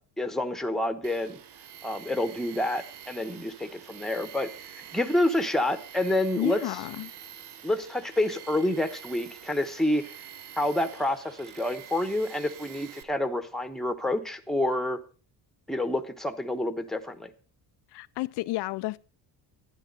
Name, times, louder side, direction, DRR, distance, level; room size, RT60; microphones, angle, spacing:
voice 1, 0.2-1.4 1.8-4.5 4.8-6.6 7.6-10.0 10.6-15.0 15.7-17.3, left 1 dB, ahead, 1.0 m, -28 dB
Tools, 1.0-13.0, right 9 dB, 70° right, 1.1 m, -47 dB
voice 2, 6.4-7.1 17.9-19.0, left 19 dB, 70° left, 0.5 m, -31 dB
12.0 x 10.0 x 5.5 m
cardioid pair, 125°, 41 cm